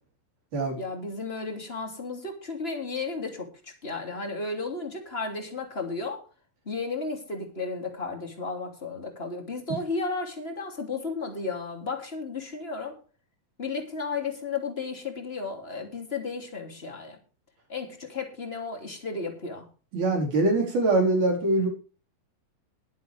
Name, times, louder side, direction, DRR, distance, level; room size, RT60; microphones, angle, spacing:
voice 1, 0.8-6.2 6.6-13.0 13.6-17.2 17.7-19.7, left 4 dB, 20° left, 3 dB, 2.7 m, -33 dB
voice 2, 19.9-21.7, right 2 dB, 60° right, -1 dB, 5.9 m, -23 dB
21.5 x 7.7 x 3.4 m, 0.37 s
omnidirectional pair, 4.1 m